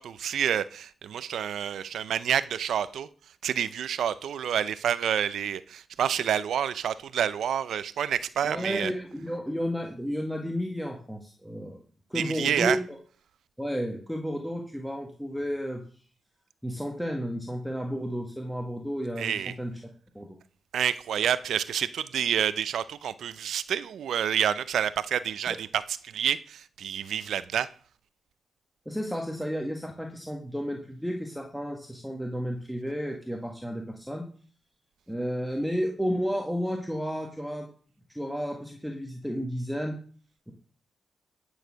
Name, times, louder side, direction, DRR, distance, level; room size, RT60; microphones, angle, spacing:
voice 1, 0.0-3.1 3.4-8.9 12.1-12.8 19.2-19.5 20.7-27.7, right 9 dB, 85° right, 0.5 m, -28 dB
voice 2, 8.4-11.8 12.1-13.0 13.6-15.8 16.6-19.7 20.1-20.4 25.5-25.6 28.8-34.3 35.1-37.7 38.1-39.9, equal, ahead, 1.6 m, -32 dB
11.0 x 6.5 x 6.3 m
cardioid pair, 80°, 0 cm